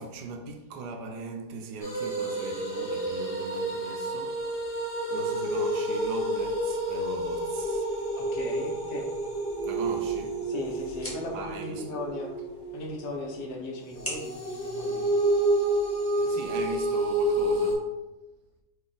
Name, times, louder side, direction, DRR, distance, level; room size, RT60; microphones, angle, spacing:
voice 1, 0.0-7.9 9.6-10.4 11.3-11.9 16.2-17.9, right 4 dB, 80° right, 1.2 m, -40 dB
sound 1, 1.8-13.3 13.9-17.7, right 1 dB, 45° left, 1.3 m, -29 dB
voice 2, 8.2-9.1 10.4-12.3 12.7-15.2, left 1 dB, 80° left, 1.4 m, -37 dB
sound 2, 9.7-15.8, equal, 15° left, 0.6 m, -45 dB
5.1 x 2.4 x 3.8 m
omnidirectional pair, 1.8 m